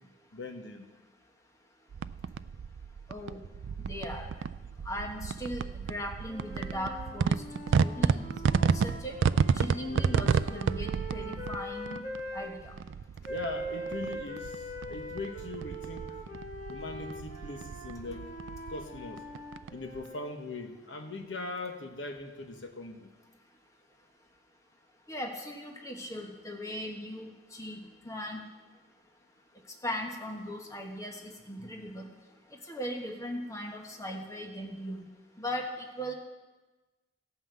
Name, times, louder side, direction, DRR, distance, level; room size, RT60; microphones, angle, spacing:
voice 1, 0.3-0.9 13.3-16.2 16.7-18.3 18.7-19.2 19.7-23.1 31.6-31.7, left 2 dB, 80° left, 5 dB, 1.1 m, -40 dB
sound 1, 1.9-20.1, right 6 dB, 80° right, 0.3 m, -32 dB
voice 2, 3.8-4.3 4.8-7.4 7.8-8.3 8.7-9.1 9.5-12.0 12.3-12.7 25.1-27.8 28.0-28.4 29.8-32.1 32.7-35.0 35.4-35.7 36.0-36.1, equal, 15° left, 1 dB, 1.3 m, -38 dB
sound 2, 6.3-12.5 13.2-20.3, equal, 45° left, 1.4 m, -42 dB
16.5 x 5.7 x 7.6 m, 1.2 s
head